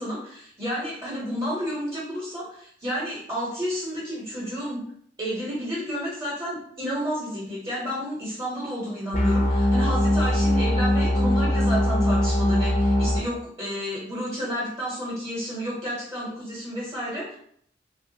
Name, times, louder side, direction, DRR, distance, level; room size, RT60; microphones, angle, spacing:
voice 1, 0.0-4.8 5.2-17.3, equal, 25° right, -8 dB, 0.9 m, -31 dB
sound 1, 9.1-13.2, left 1 dB, 40° left, 0.4 m, -21 dB
3.0 x 2.3 x 2.7 m, 0.66 s
head